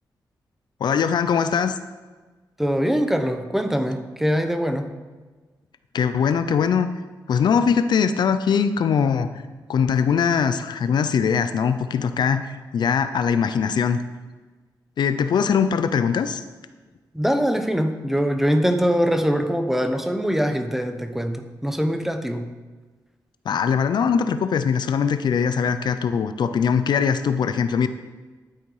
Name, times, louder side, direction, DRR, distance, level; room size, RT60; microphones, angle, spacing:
voice 1, 0.8-1.8 5.9-6.9 7.3-9.3 9.7-14.0 15.0-16.4 23.5-27.9, left 6 dB, 75° left, 10 dB, 0.6 m, -21 dB
voice 2, 2.6-4.9 17.1-22.5, equal, 5° right, 7 dB, 0.9 m, -23 dB
11.0 x 9.4 x 4.9 m, 1.3 s
wide cardioid pair, 125°, 8 cm